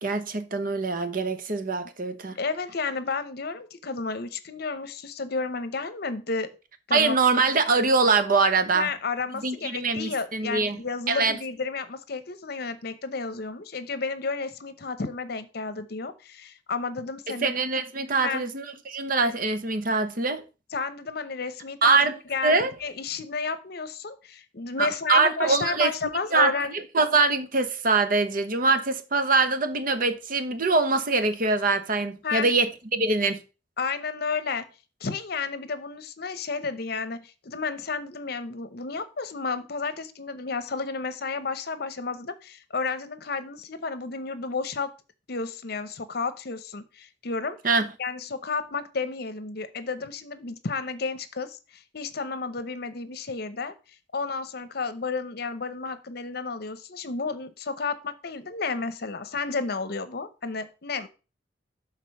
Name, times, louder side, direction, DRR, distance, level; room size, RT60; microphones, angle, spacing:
voice 1, 0.0-2.3 6.9-8.9 9.4-10.8 11.1-11.3 17.4-20.4 21.8-22.1 22.4-22.7 24.8-25.9 26.3-33.4 47.6-47.9, right 3 dB, 50° right, 1.0 m, -23 dB
voice 2, 2.4-6.5 6.9-7.2 8.7-17.5 18.2-18.4 20.7-22.0 22.3-26.7 32.2-32.5 33.8-34.7 35.0-44.9 45.3-47.6 48.0-53.8 54.1-61.1, left 4 dB, 60° left, 0.8 m, -32 dB
6.7 x 4.0 x 6.5 m
head